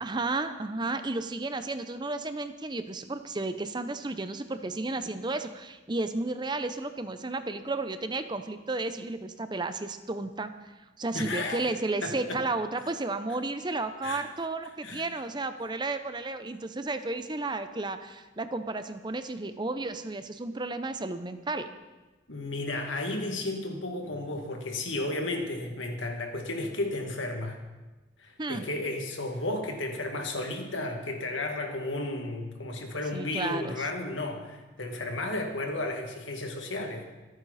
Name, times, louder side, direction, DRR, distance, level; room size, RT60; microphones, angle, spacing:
voice 1, 0.0-10.5 11.0-21.7 28.4-28.6 33.1-33.8, right 2 dB, 25° right, 10 dB, 0.7 m, -33 dB
voice 2, 11.1-11.6 12.0-12.4 14.0-14.2 14.8-15.0 22.3-27.6 28.2-37.0, left 2 dB, 90° left, 3 dB, 2.2 m, -33 dB
25.5 x 9.0 x 4.2 m, 1.2 s
head